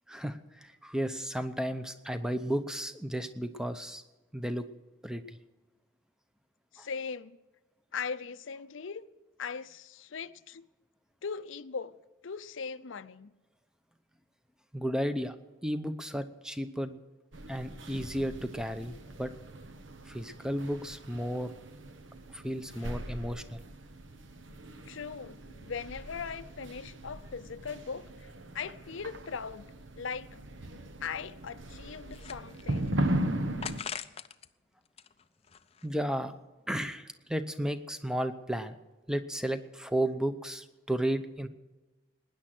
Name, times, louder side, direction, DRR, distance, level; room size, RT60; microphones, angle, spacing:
voice 1, 0.1-4.0 4.3-4.6 5.0-5.4 6.8-6.9 14.7-15.4 15.6-17.0 17.5-19.3 20.0-21.5 22.3-23.6 35.8-36.3 36.7-38.8 39.1-41.5, right 1 dB, 5° right, 0.7 m, -33 dB
voice 2, 6.7-7.4 7.9-9.0 9.4-10.7 11.2-11.9 12.2-13.3 22.8-22.9 24.9-29.7 29.9-30.4 31.0-33.0, left 5 dB, 75° left, 0.6 m, -39 dB
sound 1, 17.3-33.8, right 1 dB, 70° right, 1.1 m, -38 dB
sound 2, 32.0-32.9 33.6-34.5 34.8-36.1, left 7 dB, 30° left, 0.4 m, -42 dB
19.5 x 10.0 x 6.0 m
head